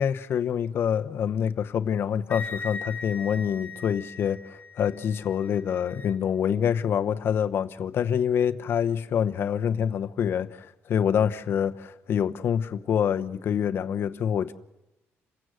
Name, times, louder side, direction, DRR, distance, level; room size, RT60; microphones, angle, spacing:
voice 1, 0.0-14.5, left 8 dB, 50° left, 1.0 m, -26 dB
Wind instrument woodwind instrument, 2.3-6.1, left 4 dB, 30° left, 2.0 m, -39 dB
28.5 x 16.5 x 7.8 m
cardioid pair, 155°, 5 cm